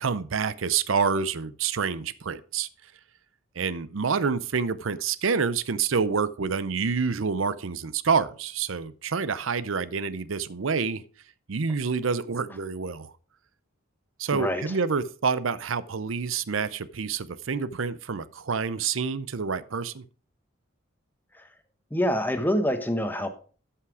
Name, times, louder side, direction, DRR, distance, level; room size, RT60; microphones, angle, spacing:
voice 1, 0.0-2.7 3.6-11.0 11.5-13.1 14.2-20.0, right 5 dB, 75° right, 16 dB, 0.6 m, -27 dB
voice 2, 14.3-14.8 21.3-21.5 21.9-23.3, equal, 10° left, 8 dB, 1.0 m, -26 dB
13.0 x 5.8 x 4.9 m, 0.40 s
head